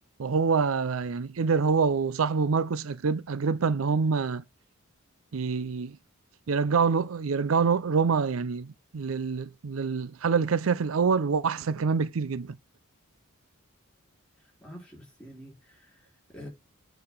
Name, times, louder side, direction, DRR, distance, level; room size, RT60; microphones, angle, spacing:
voice 1, 0.2-4.4 5.3-6.0 6.5-12.6, right 5 dB, 70° right, 0.5 m, -26 dB
voice 2, 14.4-16.5, equal, 5° left, 4.4 m, -47 dB
8.6 x 4.0 x 5.5 m
head